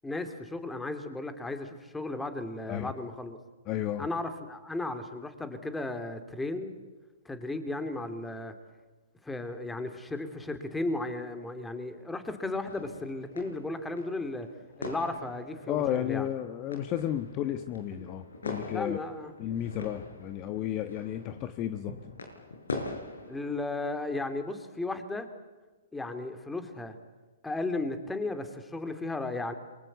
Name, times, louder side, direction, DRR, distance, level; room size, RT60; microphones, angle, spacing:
voice 1, 0.0-3.4 4.0-6.7 7.2-8.5 9.2-14.5 14.8-16.3 17.9-18.1 18.7-19.3 23.3-25.3 25.9-26.9 27.4-29.5, left 2 dB, 5° left, 9 dB, 2.9 m, -35 dB
voice 2, 3.6-4.1 15.7-19.0 19.4-21.9, left 11 dB, 35° left, 9 dB, 1.3 m, -32 dB
sound 1, 12.4-23.5, left 3 dB, 90° left, 6.3 m, -43 dB
29.0 x 23.0 x 8.2 m, 1.2 s
hypercardioid pair, 130°, 0 cm